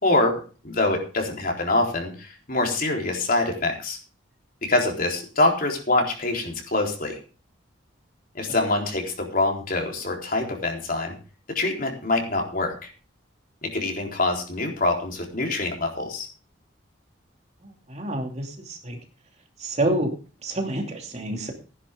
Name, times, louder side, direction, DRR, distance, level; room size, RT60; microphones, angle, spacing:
voice 1, 0.0-4.0 4.6-7.1 8.3-11.1 11.5-12.9 13.6-16.3, left 2 dB, 45° left, 1 dB, 3.9 m, -25 dB
voice 2, 17.6-19.0 19.6-20.1 20.4-21.5, right 1 dB, 35° right, 3 dB, 2.7 m, -28 dB
16.0 x 10.5 x 3.7 m, 0.36 s
head